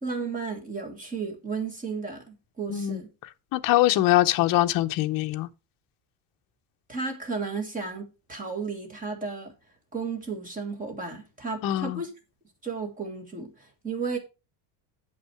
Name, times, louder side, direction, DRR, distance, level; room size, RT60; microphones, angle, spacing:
voice 1, 0.0-3.1 6.9-9.5 9.9-12.1 12.6-14.2, right 4 dB, 15° right, 1.7 m, -33 dB
voice 2, 2.7-3.0 3.5-5.5 11.6-12.0, left 15 dB, 45° left, 0.7 m, -23 dB
8.7 x 6.3 x 4.7 m
cardioid pair, 175°, 49 cm